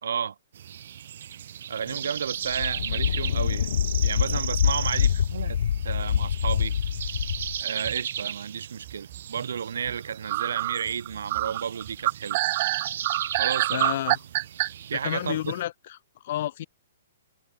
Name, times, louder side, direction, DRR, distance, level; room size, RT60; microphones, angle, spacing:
voice 1, 0.0-0.4 1.7-3.7 4.0-6.8 7.6-12.4 13.4-14.0 14.9-15.4, right 7 dB, 80° right, 1.9 m, -32 dB
sound 1, 0.5-15.6, right 10 dB, 60° right, 1.0 m, -37 dB
sound 2, 1.9-2.0 2.5-7.6, left 8 dB, 65° left, 0.7 m, -25 dB
sound 3, 7.6-8.4 8.9-9.5 9.9-10.0 10.3-14.7, right 20 dB, 35° right, 0.3 m, -27 dB
voice 2, 13.7-14.2 14.9-16.7, left 13 dB, 45° left, 2.3 m, -31 dB
hypercardioid pair, 160°, 0 cm